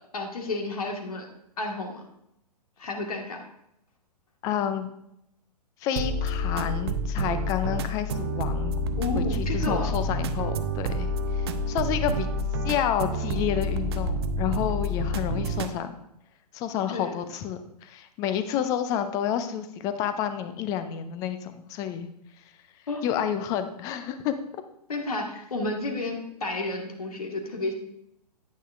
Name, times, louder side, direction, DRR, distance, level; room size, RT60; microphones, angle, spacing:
voice 1, 0.1-1.3 1.6-2.0 2.8-3.4 9.0-9.9 16.9-17.2 22.9-23.0 24.9-27.7, left 2 dB, 60° left, 2 dB, 1.7 m, -31 dB
voice 2, 4.4-4.9 5.8-8.8 9.2-9.3 9.5-12.3 12.6-16.0 16.5-22.1 23.0-24.3, left 9 dB, 15° left, 10 dB, 0.4 m, -29 dB
sound 1, 6.0-15.7, equal, 40° right, 0.6 m, -28 dB
9.3 x 9.0 x 2.5 m, 0.80 s
figure-of-eight pair, 115°, 21 cm